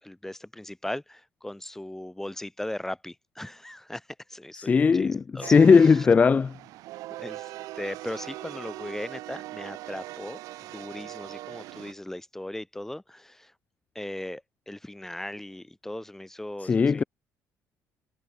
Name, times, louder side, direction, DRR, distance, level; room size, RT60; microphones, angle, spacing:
voice 1, 0.0-5.5 5.8-6.1 7.2-13.5 13.9-17.1, left 1 dB, 5° left, 4.1 m, -38 dB
voice 2, 4.6-6.5 16.6-17.0, left 5 dB, 25° left, 0.4 m, -19 dB
sound 1, 5.4-11.9, right 17 dB, 80° right, 0.9 m, -41 dB
cardioid pair, 110°, 6 cm